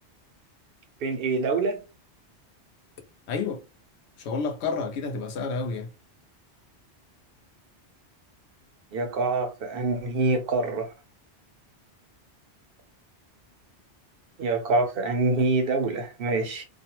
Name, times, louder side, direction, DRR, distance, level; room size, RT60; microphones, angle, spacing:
voice 1, 1.0-1.8 8.9-10.9 14.4-16.6, right 3 dB, 65° right, 0.7 m, -25 dB
voice 2, 3.3-3.6 4.2-5.9, left 4 dB, 75° left, 0.9 m, -30 dB
2.4 x 2.1 x 2.8 m
omnidirectional pair, 1.1 m